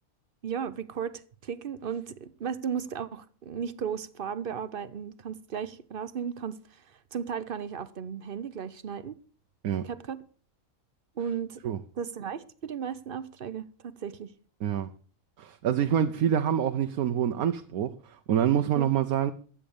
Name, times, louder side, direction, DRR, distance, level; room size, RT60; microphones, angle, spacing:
voice 1, 0.4-9.2 9.8-10.2 11.2-11.6 12.0-14.3 18.7-18.8, right 7 dB, 45° right, 0.9 m, -35 dB
voice 2, 15.4-19.3, right 9 dB, 85° right, 1.2 m, -26 dB
13.0 x 8.7 x 7.0 m
omnidirectional pair, 1.5 m